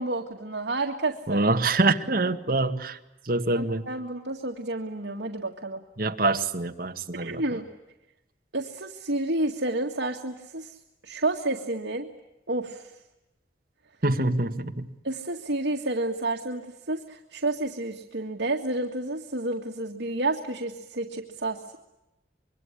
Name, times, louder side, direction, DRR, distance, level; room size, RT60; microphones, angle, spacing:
voice 1, 0.0-1.4 3.5-5.8 7.2-7.7 8.5-10.8 11.0-12.1 12.5-12.9 15.0-21.8, right 2 dB, 80° right, 1 dB, 1.9 m, -30 dB
voice 2, 1.3-3.0 3.3-3.9 6.0-7.6 14.0-14.9, right 2 dB, 55° right, 4 dB, 1.7 m, -25 dB
26.0 x 23.0 x 9.8 m, 0.93 s
head